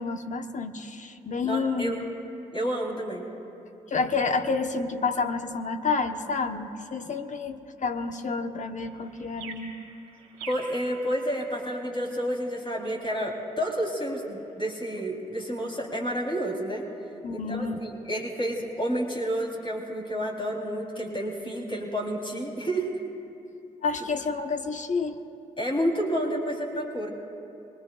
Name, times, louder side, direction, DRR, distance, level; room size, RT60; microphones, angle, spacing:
voice 1, 0.0-2.0 3.9-9.7 17.2-17.8 23.8-25.2, left 4 dB, 45° left, 6 dB, 1.2 m, -29 dB
voice 2, 1.4-2.0 2.5-3.3 10.5-16.8 17.3-22.9 25.6-27.1, equal, 30° left, -2 dB, 3.9 m, -30 dB
sound 1, 8.8-15.1, right 5 dB, 90° right, 1.7 m, -49 dB
25.5 x 21.0 x 2.5 m, 2.7 s
hypercardioid pair, 40°, 17 cm